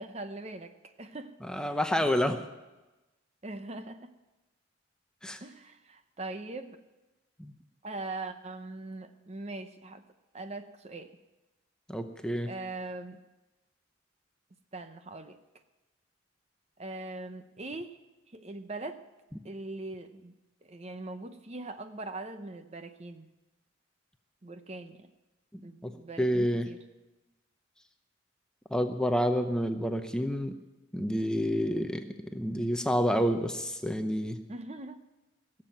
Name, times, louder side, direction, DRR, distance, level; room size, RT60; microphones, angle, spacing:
voice 1, 0.0-1.3 3.4-4.1 5.4-6.8 7.8-10.0 10.3-11.2 12.4-13.2 14.7-15.4 16.8-18.0 18.3-19.0 19.4-20.3 20.6-23.3 24.4-25.1 25.6-26.8 34.5-35.0, right 2 dB, 30° right, 9 dB, 0.7 m, -41 dB
voice 2, 1.4-2.4 5.2-5.4 7.4-7.5 11.9-12.5 25.8-25.9 26.2-26.7 28.7-30.5 30.9-32.0 32.3-34.4, equal, 5° left, 6 dB, 0.7 m, -28 dB
17.5 x 7.6 x 9.2 m, 1.1 s
head